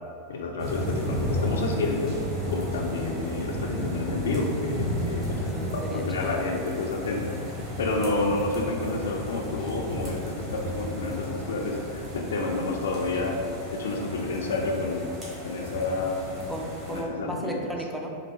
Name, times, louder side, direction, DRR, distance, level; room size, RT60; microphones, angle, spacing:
voice 1, 0.3-2.1 2.5-5.4 5.7-13.4 13.7-15.1 15.4-16.3 16.9-17.6, left 3 dB, 65° left, 1 dB, 0.4 m, -29 dB
sound 1, 0.6-17.0, equal, 25° right, 1.3 m, -33 dB
voice 2, 5.4-6.5 16.5-18.1, equal, 5° right, 0 dB, 0.4 m, -35 dB
3.8 x 2.5 x 3.4 m, 2.4 s
figure-of-eight pair, 90°, 0 cm